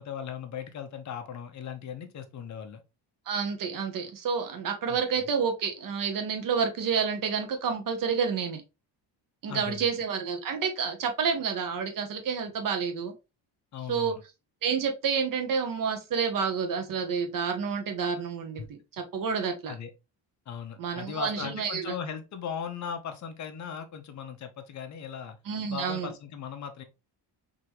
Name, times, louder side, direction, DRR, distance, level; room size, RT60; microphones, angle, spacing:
voice 1, 0.0-2.8 4.9-5.3 9.5-10.0 13.7-14.2 18.6-18.7 19.3-19.9 20.5-25.4 25.7-26.8, left 7 dB, 40° left, 0.7 m, -38 dB
voice 2, 3.3-8.6 9.4-13.1 13.9-14.2 14.6-19.7 20.8-21.9 25.5-26.1, right 6 dB, 50° right, 0.9 m, -29 dB
3.7 x 2.8 x 3.0 m
cardioid pair, 140°, 43 cm